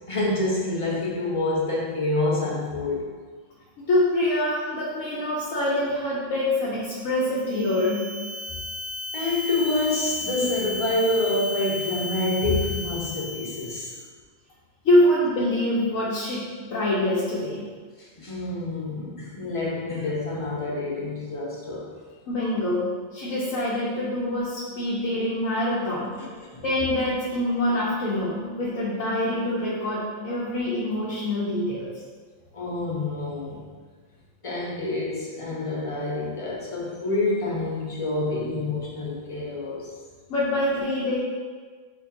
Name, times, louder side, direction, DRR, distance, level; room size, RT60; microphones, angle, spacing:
voice 1, 0.1-3.1 9.1-13.9 18.2-21.9 26.4-26.6 32.5-33.6 34.4-39.9, left 2 dB, 35° left, -4 dB, 0.6 m, -27 dB
voice 2, 3.9-8.1 14.8-16.4 16.7-17.6 22.3-26.1 26.6-31.9 40.3-41.2, left 1 dB, 70° left, -7 dB, 1.2 m, -25 dB
sound 1, 7.4-14.0, left 3 dB, 40° right, 1.0 m, -34 dB
4.5 x 4.2 x 2.8 m, 1.5 s
omnidirectional pair, 1.5 m